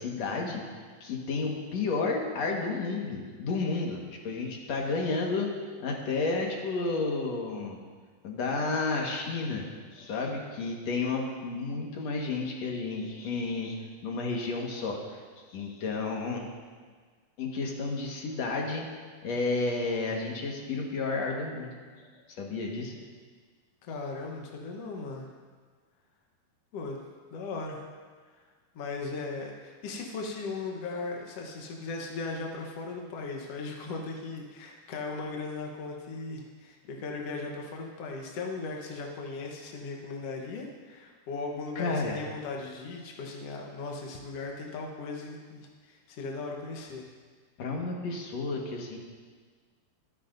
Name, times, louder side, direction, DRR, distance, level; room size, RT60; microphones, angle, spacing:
voice 1, 0.0-5.5 5.8-7.8 8.2-9.7 9.9-15.2 15.5-16.5 17.4-18.9 19.2-21.7 22.3-23.0 41.8-42.2 47.6-49.0, left 3 dB, 55° left, 0 dB, 2.2 m, -31 dB
voice 2, 23.8-25.3 26.7-27.0 27.3-27.9 28.3-28.4 28.7-47.1, left 3 dB, 75° left, 0 dB, 1.4 m, -38 dB
25.0 x 10.0 x 2.6 m, 1.5 s
omnidirectional pair, 4.5 m